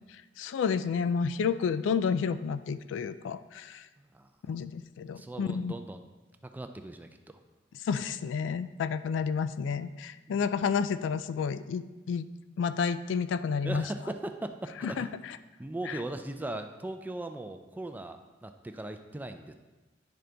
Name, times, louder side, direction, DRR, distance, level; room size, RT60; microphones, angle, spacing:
voice 1, 0.4-3.8 4.5-5.7 7.8-12.2 12.6-13.9 14.8-15.4 15.9-16.0, left 6 dB, 80° left, 12 dB, 0.3 m, -30 dB
voice 2, 4.0-4.3 5.2-6.0 6.4-7.2 10.3-10.5 13.6-15.1 15.6-19.5, right 1 dB, 10° right, 7 dB, 0.3 m, -39 dB
10.5 x 3.8 x 3.4 m, 1.2 s
head